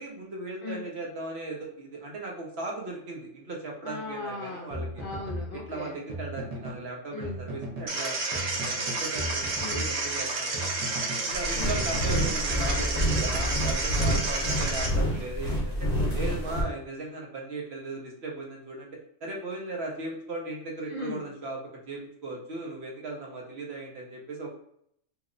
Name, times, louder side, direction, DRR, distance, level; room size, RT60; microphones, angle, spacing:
voice 1, 0.0-4.9 5.7-10.9 11.2-18.9 19.2-21.6 21.9-24.5, right 2 dB, 65° right, -1 dB, 1.0 m, -37 dB
voice 2, 3.8-6.0 7.1-7.4 9.6-9.8 11.6-11.8 20.9-21.2, left 3 dB, 55° left, 0 dB, 0.6 m, -37 dB
sound 1, 4.7-6.9 7.2-8.0 8.3-11.3 11.7-14.1, equal, 45° right, 0.5 m, -36 dB
sound 2, 7.9-14.9, right 3 dB, 80° right, 1.1 m, -31 dB
sound 3, 11.3-16.6, equal, 35° left, 1.0 m, -28 dB
2.8 x 2.1 x 3.7 m, 0.68 s
omnidirectional pair, 1.3 m